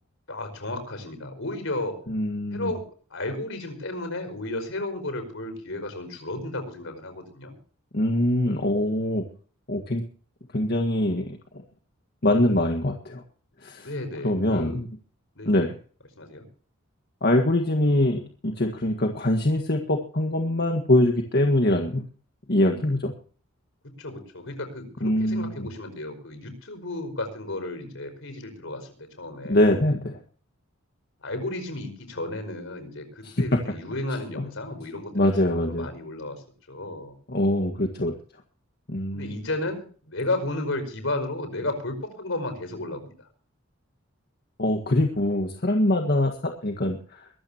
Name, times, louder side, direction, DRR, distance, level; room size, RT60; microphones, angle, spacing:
voice 1, 0.3-2.0 2.5-2.8 3.1-7.6 13.8-14.8 15.3-15.7 16.2-16.4 24.0-28.9 29.2-29.6 31.2-35.3 35.5-37.1 39.1-43.3, left 2 dB, 70° left, 8 dB, 5.1 m, -33 dB
voice 2, 2.1-2.7 7.9-9.2 9.7-10.0 10.5-11.4 12.2-13.2 13.6-13.9 14.2-14.9 15.4-15.8 17.2-22.0 22.5-23.1 25.0-25.7 29.5-30.2 33.2-33.4 34.4-34.5 35.1-35.9 37.3-38.1 38.9-39.4 44.6-47.3, left 1 dB, 50° left, 4 dB, 1.7 m, -23 dB
23.0 x 13.5 x 2.9 m, 0.42 s
head